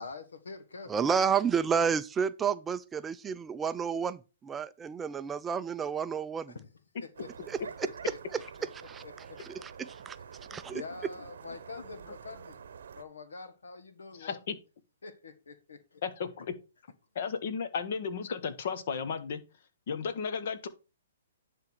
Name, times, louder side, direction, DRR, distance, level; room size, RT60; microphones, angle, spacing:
voice 1, 0.0-0.9 6.5-6.7 7.0-7.5 7.8-8.4 8.8-9.9 10.7-12.6 12.9-14.4 15.0-16.0, left 4 dB, 90° left, 1.4 m, -46 dB
voice 2, 0.9-6.5 7.5-7.6 8.8-9.0 9.4-10.2 10.5-10.8, right 6 dB, 15° right, 0.4 m, -30 dB
sound 1, 7.1-13.0, right 7 dB, 75° right, 0.8 m, -48 dB
voice 3, 14.2-14.5 16.0-16.5 17.1-19.4 19.9-20.7, left 6 dB, 60° left, 1.3 m, -34 dB
10.5 x 3.5 x 6.1 m
hypercardioid pair, 140°, 0 cm